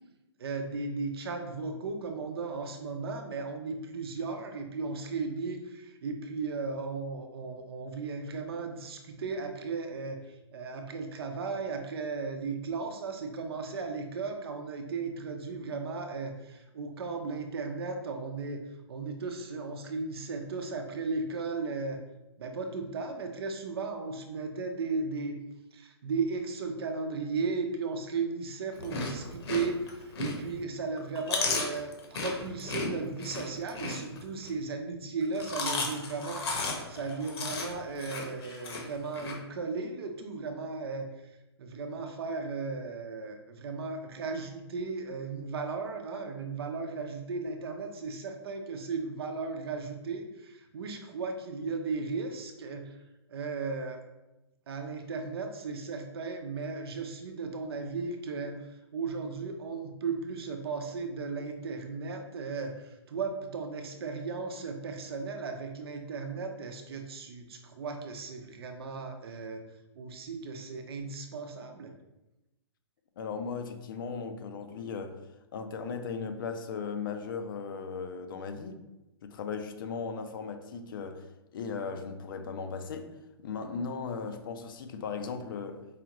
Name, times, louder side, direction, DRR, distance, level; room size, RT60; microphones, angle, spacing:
voice 1, 0.4-18.6 18.9-22.0 22.4-25.4 25.7-53.0 53.3-54.0 54.7-69.6 70.0-71.9, right 4 dB, 65° right, 0.6 m, -36 dB
Chewing mastication, 28.7-30.6 31.0-34.5 35.2-39.3, left 3 dB, 70° left, 1.1 m, -34 dB
voice 2, 73.2-75.2 75.5-78.7 79.2-83.1 83.4-85.8, left 5 dB, 55° left, 0.5 m, -37 dB
4.9 x 2.4 x 2.9 m
hypercardioid pair, 145°, 14 cm